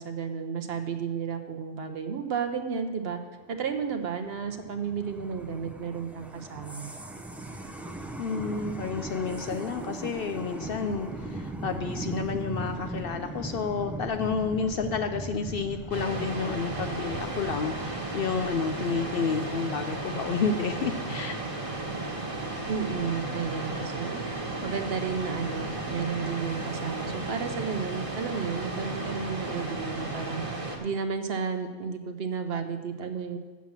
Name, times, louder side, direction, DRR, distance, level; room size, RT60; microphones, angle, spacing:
voice 1, 0.0-3.2 3.5-6.9 22.7-24.3 24.6-30.4 30.8-33.4, right 6 dB, 60° right, 7 dB, 0.9 m, -32 dB
sound 1, 3.6-20.1, right 2 dB, ahead, 0.3 m, -39 dB
voice 2, 8.2-21.4, left 5 dB, 60° left, 8 dB, 0.6 m, -30 dB
sound 2, 15.9-30.8, right 2 dB, 30° right, 1.3 m, -34 dB
7.3 x 7.2 x 7.2 m, 1.4 s
omnidirectional pair, 1.3 m